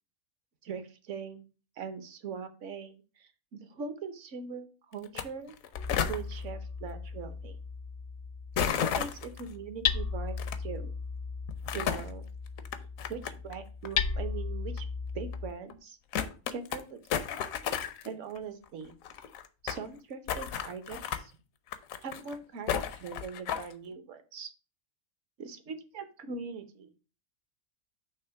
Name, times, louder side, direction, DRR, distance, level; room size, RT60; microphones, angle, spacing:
voice 1, 0.6-1.4 1.8-5.5 6.1-7.6 8.6-10.9 11.7-12.2 13.1-14.8 15.1-16.0 16.5-17.3 18.0-18.9 19.6-21.3 22.0-24.5 25.4-26.9, right 5 dB, 65° right, 9 dB, 1.1 m, -41 dB
sound 1, 5.0-5.2 5.5-6.2 8.6-9.4 10.4-10.6 11.5-12.1 12.6-13.5 13.8-13.9 14.8-14.9 15.3-15.4 15.7-15.8 16.1-16.8 17.1-18.1 18.4-18.5 18.6-18.7 18.9-19.8 20.3-21.2 21.7-22.4 22.7-23.7, left 8 dB, 80° left, 1.1 m, -32 dB
Hammer, 5.7-15.5, left 5 dB, 60° left, 0.6 m, -36 dB
6.5 x 3.0 x 5.7 m, 0.34 s
omnidirectional pair, 1.4 m